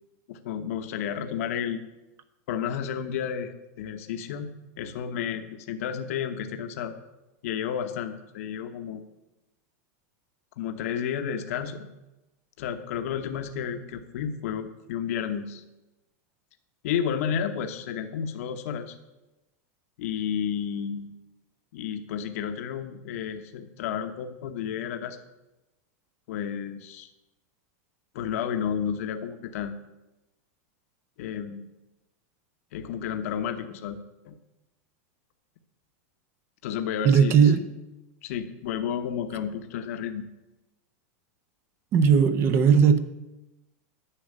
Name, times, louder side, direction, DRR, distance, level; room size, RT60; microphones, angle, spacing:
voice 1, 0.3-1.8 2.5-4.5 4.8-6.9 7.4-9.0 10.6-11.9 12.6-15.6 16.8-18.9 20.0-21.1 21.7-25.2 26.3-27.1 28.1-29.7 31.2-31.7 32.7-34.0 34.2-34.4 36.6-37.6 38.2-40.3, left 8 dB, 65° left, 8 dB, 1.0 m, -31 dB
voice 2, 37.0-37.6 41.9-43.0, right 6 dB, 30° right, 12 dB, 0.6 m, -18 dB
10.0 x 6.3 x 8.5 m, 1.0 s
supercardioid pair, 160°, 8 cm